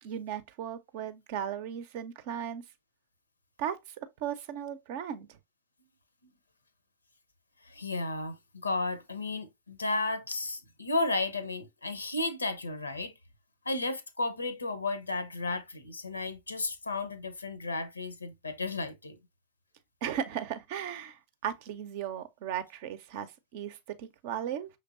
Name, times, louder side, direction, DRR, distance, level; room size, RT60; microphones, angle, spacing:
voice 1, 0.0-2.6 3.6-3.8 4.2-5.3 20.0-24.7, right 9 dB, 50° right, 0.6 m, -36 dB
voice 2, 7.6-8.4 8.6-13.1 13.7-19.2, left 2 dB, 80° left, 0.6 m, -33 dB
5.8 x 3.3 x 2.4 m
figure-of-eight pair, 90°, 0 cm